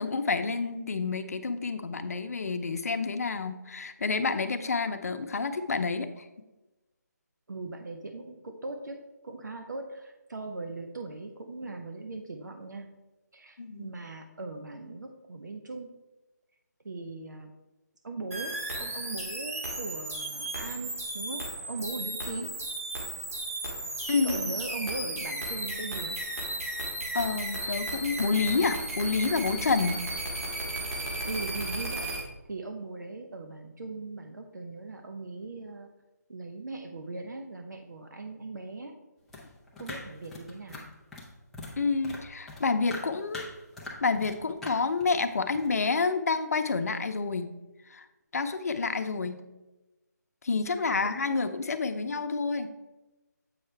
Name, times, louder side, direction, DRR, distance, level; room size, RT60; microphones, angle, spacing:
voice 1, 0.0-6.3 13.6-13.9 24.1-24.6 27.1-30.1 41.8-43.5 44.0-47.5 47.9-48.1 48.3-49.4 50.4-52.7, left 4 dB, 60° left, 8 dB, 0.7 m, -29 dB
voice 2, 7.5-12.9 13.3-15.9 16.8-17.5 18.0-22.5 24.2-26.2 31.2-35.9 36.3-39.0 39.8-40.8 50.9-51.1 51.3-51.4, right 3 dB, 80° right, 4 dB, 0.8 m, -39 dB
sound 1, 18.3-32.2, right 1 dB, 55° right, 2.0 m, -35 dB
sound 2, 39.3-41.8 42.0-44.4 44.6-45.7, left 2 dB, ahead, 0.4 m, -42 dB
7.8 x 5.7 x 3.3 m, 1.1 s
figure-of-eight pair, 165°, 10 cm